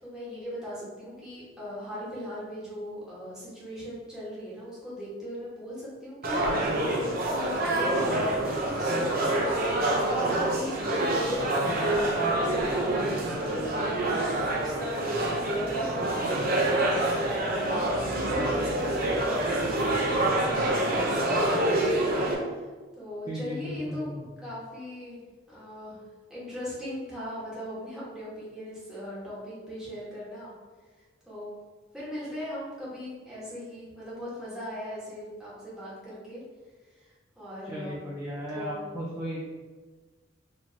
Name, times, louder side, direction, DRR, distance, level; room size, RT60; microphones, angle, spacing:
voice 1, 0.0-8.4 8.8-11.4 11.7-21.7 22.3-22.6 22.9-24.1 24.4-25.2 25.5-26.0 26.3-30.5 31.2-31.5 31.9-36.4 36.8-38.0 38.5-38.9, equal, 5° right, -9 dB, 1.4 m, -39 dB
sound 1, 6.2-22.3, right 1 dB, 50° right, 0.7 m, -26 dB
voice 2, 23.3-24.3 37.7-39.4, equal, 20° right, -8 dB, 0.6 m, -35 dB
4.9 x 2.8 x 2.8 m, 1.4 s
head